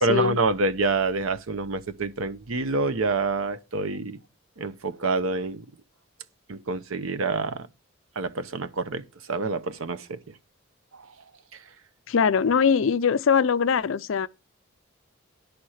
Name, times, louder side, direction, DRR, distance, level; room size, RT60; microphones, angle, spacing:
voice 1, 0.0-4.2 4.6-5.6 6.5-7.7 8.2-9.0 9.3-10.2, right 3 dB, 80° right, 0.8 m, -27 dB
voice 2, 12.1-14.3, left 6 dB, 70° left, 0.5 m, -22 dB
10.0 x 4.3 x 6.4 m
head